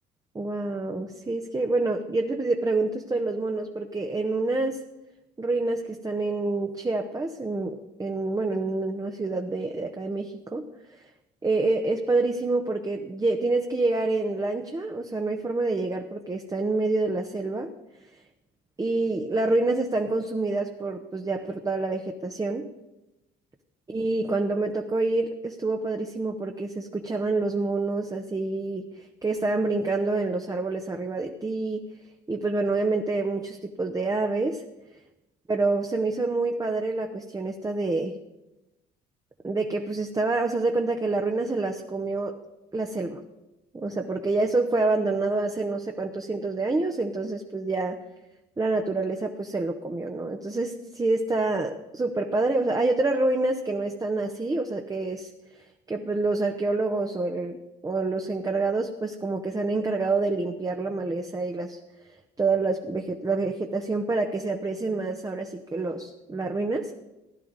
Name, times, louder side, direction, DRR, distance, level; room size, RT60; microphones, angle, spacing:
voice 1, 0.3-4.8 5.4-10.6 11.4-17.7 18.8-22.7 23.9-31.8 32.3-34.6 35.5-38.2 39.4-42.4 42.7-43.2 43.7-48.0 48.6-55.3 55.9-57.6 57.8-61.8 62.4-66.9, right 3 dB, 20° right, 4 dB, 0.9 m, -27 dB
16.0 x 11.0 x 4.1 m, 0.95 s
cardioid pair, 85°, 20 cm